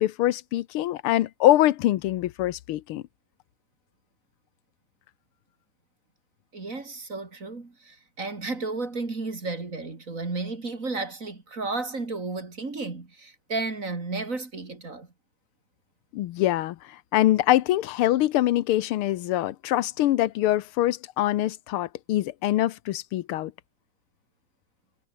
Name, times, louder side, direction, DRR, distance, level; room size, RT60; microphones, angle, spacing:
voice 1, 0.0-3.0 16.1-23.5, left 14 dB, 85° left, 1.7 m, -24 dB
voice 2, 6.5-15.1, right 3 dB, 35° right, 3.5 m, -33 dB
omnidirectional pair, 2.3 m